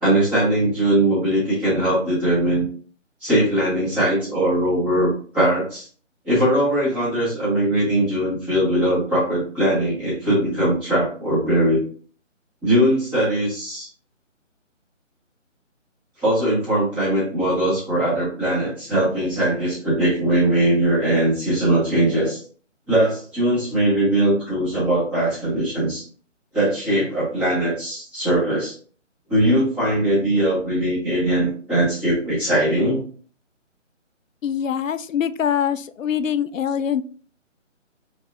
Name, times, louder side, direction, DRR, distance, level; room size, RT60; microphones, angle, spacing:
voice 1, 0.0-2.7 3.2-5.9 6.2-11.8 12.6-13.9 16.2-22.4 22.9-26.0 26.5-28.7 29.3-33.0, right 1 dB, 5° right, -9 dB, 0.9 m, -20 dB
voice 2, 34.4-37.0, left 8 dB, 85° left, 13 dB, 0.5 m, -23 dB
5.1 x 3.3 x 2.5 m, 0.43 s
figure-of-eight pair, 155°, 38 cm